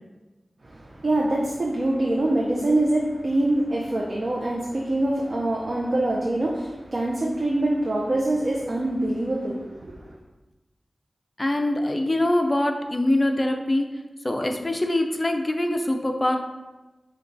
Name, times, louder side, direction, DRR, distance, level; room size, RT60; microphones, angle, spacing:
voice 1, 0.6-10.1, right 1 dB, 60° right, -2 dB, 0.5 m, -24 dB
voice 2, 11.4-13.9 14.2-16.4, left 1 dB, 30° left, 4 dB, 0.5 m, -23 dB
6.8 x 2.3 x 2.6 m, 1.1 s
cardioid pair, 45°, 0 cm